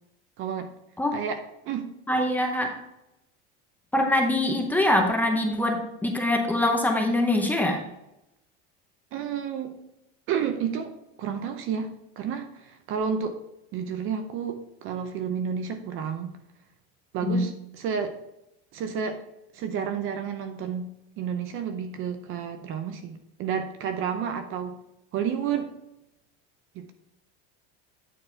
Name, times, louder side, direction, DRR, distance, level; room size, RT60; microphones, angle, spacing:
voice 1, 0.4-0.7 1.1-1.9 9.1-9.7 10.3-13.4 13.7-16.4 17.1-18.2 18.7-19.2 19.5-20.9 21.2-24.8 25.1-25.7 26.8-26.9, right 7 dB, 40° right, 8 dB, 0.6 m, -31 dB
voice 2, 2.1-2.8 3.9-7.8 17.2-17.5, left 1 dB, 5° left, 2 dB, 0.7 m, -24 dB
9.2 x 4.1 x 4.3 m, 0.87 s
cardioid pair, 160°, 34 cm